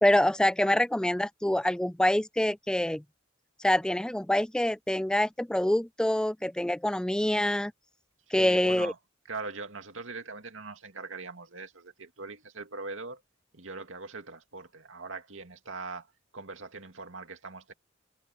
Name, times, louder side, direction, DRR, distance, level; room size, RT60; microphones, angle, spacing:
voice 1, 0.0-3.0 3.6-7.7 8.3-8.9, left 1 dB, 5° left, 0.4 m, -26 dB
voice 2, 8.3-9.0 9.3-13.2 13.5-16.1 16.3-17.7, right 3 dB, 80° right, 2.3 m, -41 dB
head